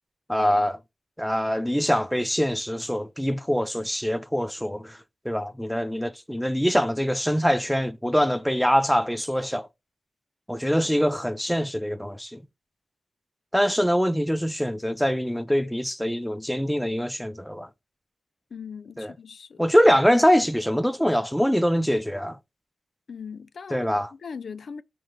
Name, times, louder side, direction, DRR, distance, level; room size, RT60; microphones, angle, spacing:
voice 1, 0.3-0.8 1.2-5.0 5.2-9.7 10.5-12.4 13.5-17.7 19.0-19.1 19.6-22.4 23.7-24.1, equal, ahead, 0.4 m, -24 dB
voice 2, 18.5-19.6 23.1-24.8, left 6 dB, 65° left, 0.3 m, -39 dB
4.7 x 3.1 x 3.5 m
wide cardioid pair, 105°, 0 cm